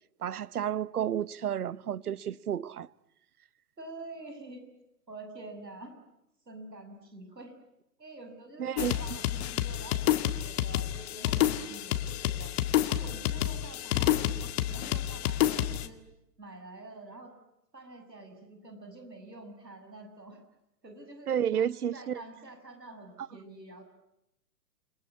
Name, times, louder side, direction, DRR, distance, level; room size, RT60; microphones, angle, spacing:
voice 1, 0.2-2.9 8.6-8.9 21.3-22.2 23.2-23.3, right 9 dB, 65° right, 1.0 m, -31 dB
voice 2, 3.8-4.6 5.1-5.9 6.5-7.6 8.0-12.5 12.9-16.0 16.4-17.4 17.7-20.4 20.8-23.8, right 2 dB, 85° right, 7.1 m, -47 dB
sound 1, 8.8-15.9, left 12 dB, 40° left, 1.9 m, -29 dB
29.5 x 20.5 x 9.6 m
figure-of-eight pair, 120°, 48 cm